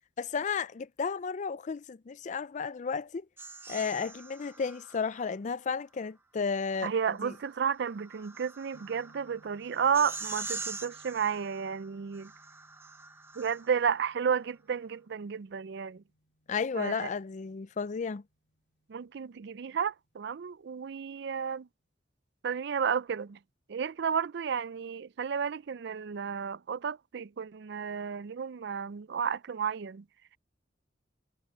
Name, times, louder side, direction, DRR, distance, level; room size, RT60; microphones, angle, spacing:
voice 1, 0.2-3.3 3.7-6.9 7.2-7.3 16.5-18.2, left 5 dB, 40° left, 0.4 m, -33 dB
sound 1, 3.4-5.3 6.8-14.0, right 3 dB, 15° right, 0.9 m, -44 dB
voice 2, 6.8-12.3 13.4-16.0 16.7-17.1 18.9-21.7 22.4-23.4 23.7-30.0, right 7 dB, 65° right, 0.4 m, -32 dB
sound 2, 8.7-20.8, equal, 80° left, 4.2 m, -67 dB
head